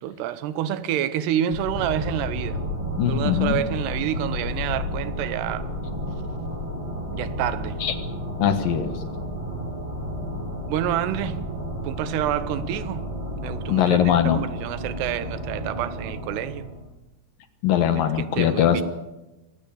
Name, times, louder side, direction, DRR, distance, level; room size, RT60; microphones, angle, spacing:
voice 1, 0.0-2.6 3.1-5.7 7.1-7.8 10.7-11.4 11.8-13.1 13.4-16.7 18.2-18.8, right 11 dB, 80° right, 2.9 m, -28 dB
sound 1, 1.5-12.8, left 3 dB, 85° left, 4.9 m, -36 dB
sound 2, 1.7-16.9, right 1 dB, 20° right, 0.9 m, -33 dB
voice 2, 3.0-3.6 7.8-7.9 8.4-8.9 13.7-14.4 17.6-18.8, left 9 dB, 65° left, 2.8 m, -21 dB
24.0 x 19.5 x 7.1 m
omnidirectional pair, 4.9 m